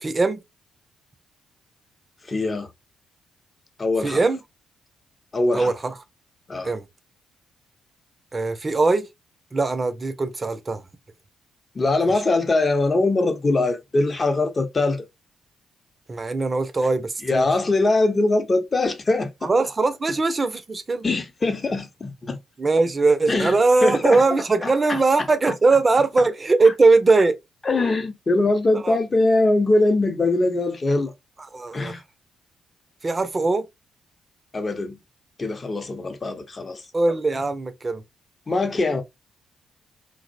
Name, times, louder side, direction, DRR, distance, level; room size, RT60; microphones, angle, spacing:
voice 1, 0.0-0.4 4.0-4.4 5.5-5.9 6.6-6.9 8.3-9.1 9.5-10.8 16.1-17.5 19.4-21.0 22.6-27.4 28.8-29.0 31.5-31.9 33.0-33.7 36.9-38.0, right 3 dB, 35° right, 0.5 m, -20 dB
voice 2, 2.3-2.7 3.8-4.2 5.3-5.7 6.5-6.7 11.7-15.0 17.2-19.5 21.0-22.4 23.3-24.2 24.6-25.0 25.5-25.6 26.6-26.7 27.6-31.1 31.7-32.0 34.5-35.0 35.4-36.8 38.5-39.0, left 2 dB, 35° left, 0.6 m, -22 dB
2.4 x 2.0 x 2.4 m
hypercardioid pair, 45°, 0 cm